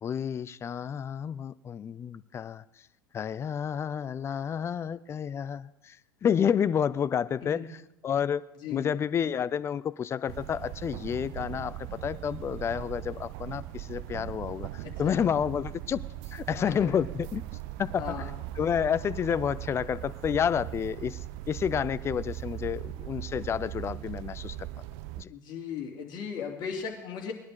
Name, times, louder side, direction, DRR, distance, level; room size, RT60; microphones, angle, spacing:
voice 1, 0.0-2.6 3.1-6.0 6.2-7.8 8.0-8.4 8.7-16.0 16.3-17.4 17.8-18.1 18.6-21.2 21.5-24.6 25.2-25.3, left 8 dB, 25° left, 16 dB, 0.5 m, -30 dB
voice 2, 8.6-9.0 14.8-15.3 16.5-17.0 18.0-18.3 25.3-27.3, left 6 dB, 40° left, 0 dB, 2.8 m, -37 dB
sound 1, 10.3-25.2, right 15 dB, 50° right, 0.5 m, -39 dB
19.5 x 10.5 x 3.8 m, 0.87 s
figure-of-eight pair, 80°, 11 cm